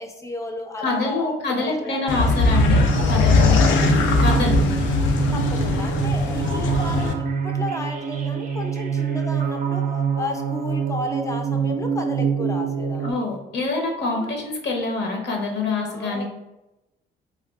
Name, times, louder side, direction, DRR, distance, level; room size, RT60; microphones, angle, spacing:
voice 1, 0.0-2.4 3.6-3.8 5.3-13.2 14.2-14.4 15.9-16.3, left 2 dB, 15° left, 4 dB, 0.4 m, -33 dB
voice 2, 0.8-3.6 4.2-4.6 13.0-16.3, left 3 dB, 60° left, 1 dB, 0.8 m, -26 dB
sound 1, 2.1-7.1, left 3 dB, 75° left, 0.4 m, -20 dB
sound 2, 2.2-13.1, right 7 dB, 45° right, 0.4 m, -26 dB
3.5 x 2.3 x 2.3 m, 0.95 s
cardioid pair, 90°, 20 cm